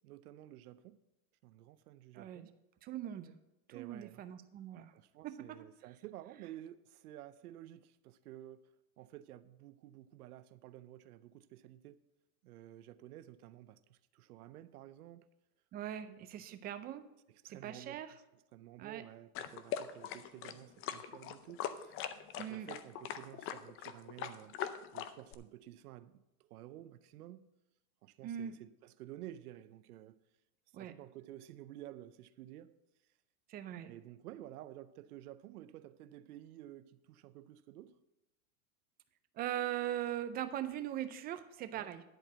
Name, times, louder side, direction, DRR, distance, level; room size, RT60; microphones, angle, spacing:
voice 1, 0.0-1.0 1.4-2.5 3.7-4.2 4.9-8.6 9.0-12.0 12.4-15.3 16.0-16.5 17.3-22.0 22.4-24.6 24.9-27.5 28.0-30.2 30.8-32.7 33.7-38.0 41.7-41.9, right 13 dB, 90° right, 0.7 m, -52 dB
voice 2, 2.1-2.5 2.8-3.3 3.7-4.9 5.2-5.7 15.7-17.1 17.4-18.1 18.8-19.0 22.4-22.7 28.2-28.6 30.7-30.9 33.5-33.9 39.4-42.0, right 11 dB, 20° right, 0.4 m, -40 dB
sound 1, 19.3-25.3, left 9 dB, 30° left, 0.5 m, -41 dB
10.5 x 4.6 x 7.9 m
supercardioid pair, 135°, 43 cm